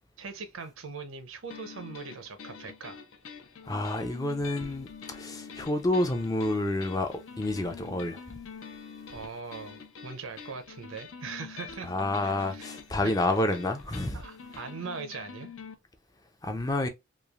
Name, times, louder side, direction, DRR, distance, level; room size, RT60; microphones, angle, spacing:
voice 1, 0.2-3.0 9.1-11.9 12.2-12.7 14.1-15.5, right 5 dB, 90° right, 0.7 m, -41 dB
sound 1, 1.5-15.8, left 6 dB, 80° left, 0.6 m, -46 dB
voice 2, 3.6-8.2 11.8-14.2 16.4-16.9, left 1 dB, 20° left, 0.4 m, -29 dB
3.1 x 2.3 x 2.3 m
head